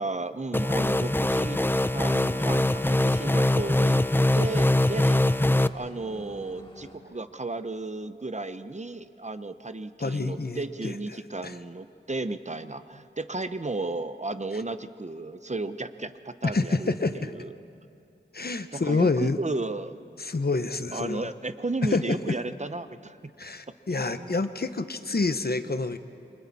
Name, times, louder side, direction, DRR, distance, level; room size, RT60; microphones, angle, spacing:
voice 1, 0.0-1.6 1.9-4.1 4.3-5.2 5.7-17.5 18.7-20.0 20.9-23.3 23.9-24.4, right 2 dB, 40° right, 11 dB, 0.8 m, -34 dB
sound 1, 0.5-5.7, left 1 dB, 10° left, 0.5 m, -23 dB
sound 2, 1.8-7.0, left 1 dB, 30° left, 2.8 m, -48 dB
voice 2, 10.0-10.9 11.4-11.5 16.5-17.3 18.3-19.4 20.2-21.3 21.9-22.2 23.4-26.0, left 3 dB, 60° left, 10 dB, 1.0 m, -28 dB
29.0 x 25.5 x 4.2 m, 2.7 s
wide cardioid pair, 60°, 19 cm